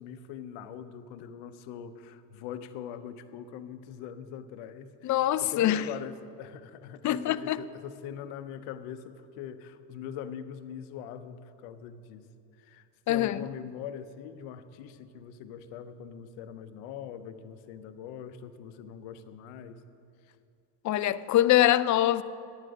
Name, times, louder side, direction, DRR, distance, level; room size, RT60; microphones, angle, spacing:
voice 1, 0.0-12.2 12.6-19.8, left 8 dB, 80° left, 0.8 m, -42 dB
voice 2, 5.0-5.8 7.0-7.6 13.1-13.4 20.8-22.2, left 13 dB, 40° left, 0.4 m, -24 dB
11.0 x 9.6 x 5.0 m
supercardioid pair, 70°, 47 cm